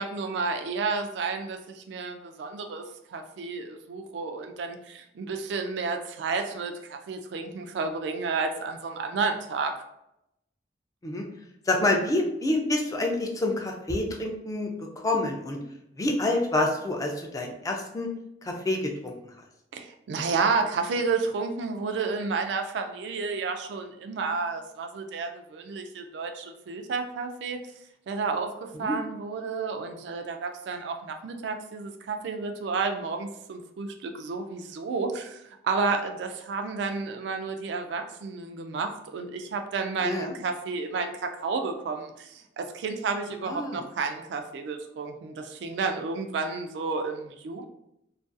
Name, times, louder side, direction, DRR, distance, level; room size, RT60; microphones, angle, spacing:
voice 1, 0.0-9.8 19.7-27.6 28.1-47.6, right 4 dB, 70° right, 6 dB, 0.3 m, -31 dB
voice 2, 11.7-14.7 15.0-15.6 16.0-18.1 18.4-19.1 28.8-29.0 40.0-40.3 43.5-43.8, left 2 dB, 20° left, 1 dB, 0.3 m, -27 dB
2.4 x 2.3 x 2.5 m, 0.82 s
head